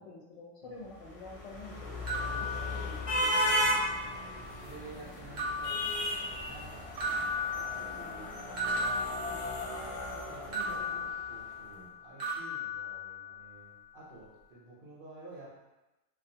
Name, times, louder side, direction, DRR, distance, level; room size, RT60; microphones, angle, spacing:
voice 1, 0.0-3.7 4.6-5.1 7.8-8.3 9.0-10.4 10.8-11.1 11.8-11.9, left 3 dB, 75° left, -2 dB, 0.9 m, -50 dB
sound 1, 1.0-11.3, equal, 55° left, 0.4 m, -35 dB
sound 2, 2.1-3.3 3.7-4.5 5.4-6.6 7.0-9.9 10.5-11.9 12.2-13.5, left 1 dB, 80° right, 0.9 m, -36 dB
voice 2, 2.3-3.2 3.6-8.6 9.6-9.9 10.3-15.6, right 3 dB, 60° right, -7 dB, 0.6 m, -52 dB
2.3 x 2.2 x 2.6 m, 1.0 s
omnidirectional pair, 1.3 m